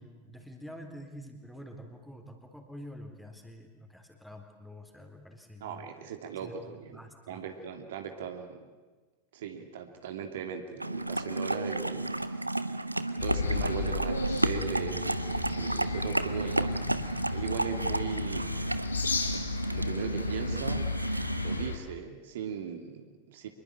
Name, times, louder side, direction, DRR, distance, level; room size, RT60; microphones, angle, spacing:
voice 1, 0.0-5.9 6.4-7.4, equal, ahead, 4 dB, 3.9 m, -47 dB
voice 2, 5.6-7.0 7.3-8.7 9.3-12.6 13.2-16.9 17.3-18.6 19.7-20.9 21.4-23.5, right 7 dB, 55° right, 5 dB, 2.8 m, -38 dB
sound 1, 10.8-21.7, right 2 dB, 85° right, 1.0 m, -32 dB
sound 2, 13.2-21.8, left 4 dB, 75° left, 3.4 m, -34 dB
26.0 x 22.0 x 8.9 m, 1.3 s
figure-of-eight pair, 90°, 0 cm